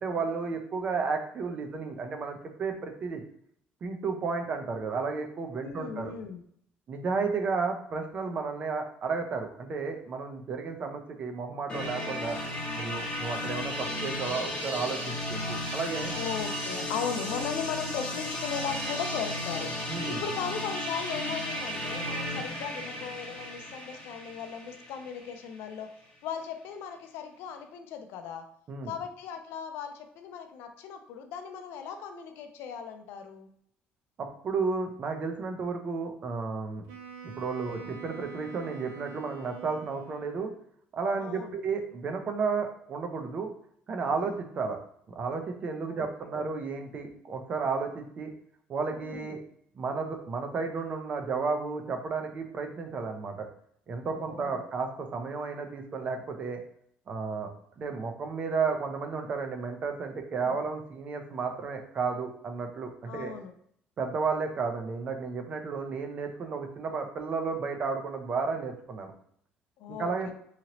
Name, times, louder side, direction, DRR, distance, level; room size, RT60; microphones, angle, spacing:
voice 1, 0.0-3.2 3.8-6.1 6.9-12.4 12.7-16.1 19.9-20.2 28.7-28.9 34.2-36.8 37.2-40.5 40.9-43.5 43.9-44.8 45.1-48.3 48.7-49.4 49.8-53.5 53.9-56.6 57.1-57.5 57.8-63.3 64.0-69.1 69.9-70.3, right 4 dB, 35° right, 4 dB, 0.4 m, -32 dB
voice 2, 5.6-6.4 16.1-25.9 26.2-28.4 28.8-33.5 37.6-37.9 41.2-41.6 44.1-44.4 45.9-46.1 49.0-49.3 54.0-54.6 60.3-60.5 63.1-63.5 69.8-70.3, left 7 dB, 80° left, 6 dB, 0.4 m, -38 dB
sound 1, 11.7-25.4, left 1 dB, 25° left, 0.8 m, -34 dB
Wind instrument woodwind instrument, 36.9-40.4, right 6 dB, 90° right, 0.5 m, -46 dB
2.9 x 2.7 x 2.8 m, 0.66 s
cardioid pair, 155°, 4 cm